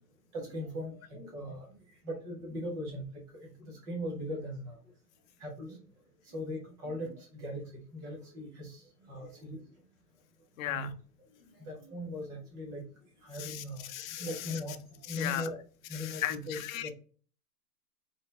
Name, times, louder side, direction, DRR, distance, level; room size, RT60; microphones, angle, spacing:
voice 1, 0.3-1.7 2.0-3.1 3.3-4.8 5.4-5.8 6.3-9.6 10.6-10.9 11.6-12.8 13.2-13.9 14.2-14.8 15.1-15.6 15.9-16.9, left 1 dB, 10° right, 0 dB, 0.4 m, -39 dB
voice 2, 10.6-10.9 13.3-14.6 15.1-15.5 15.9-16.9, left 12 dB, 55° left, 9 dB, 0.7 m, -37 dB
4.0 x 4.0 x 3.1 m, 0.42 s
hypercardioid pair, 135°, 48 cm